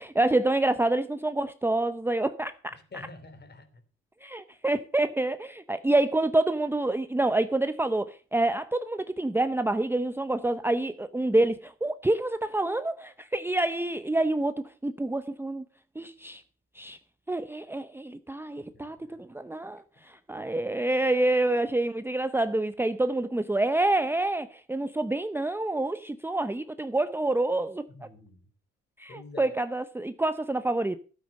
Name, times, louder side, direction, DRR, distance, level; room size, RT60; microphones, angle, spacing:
voice 1, 0.0-2.8 4.2-15.6 16.0-16.4 16.8-17.0 17.3-27.9 29.0-31.0, right 2 dB, 5° right, 0.7 m, -27 dB
voice 2, 2.9-3.7 18.7-19.2 27.9-28.4 29.1-29.5, left 3 dB, 35° left, 3.0 m, -47 dB
12.5 x 8.6 x 6.4 m
cardioid pair, 90°, 30 cm